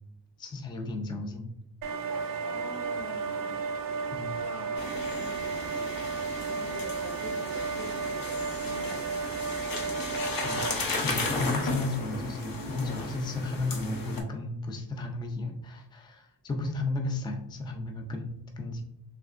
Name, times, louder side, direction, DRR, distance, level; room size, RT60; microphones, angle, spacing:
voice 1, 0.4-1.5 4.1-4.4 10.4-10.6 11.0-18.8, left 2 dB, 10° left, 3 dB, 0.3 m, -34 dB
sound 1, 1.8-10.7, right 5 dB, 50° right, 0.5 m, -33 dB
voice 2, 2.4-3.6 4.3-6.1 6.3-10.1, left 1 dB, 35° left, -1 dB, 1.1 m, -45 dB
sound 2, 4.8-14.2, left 2 dB, 55° left, 0.7 m, -35 dB
3.4 x 2.8 x 2.4 m, 0.83 s
wide cardioid pair, 145°, 43 cm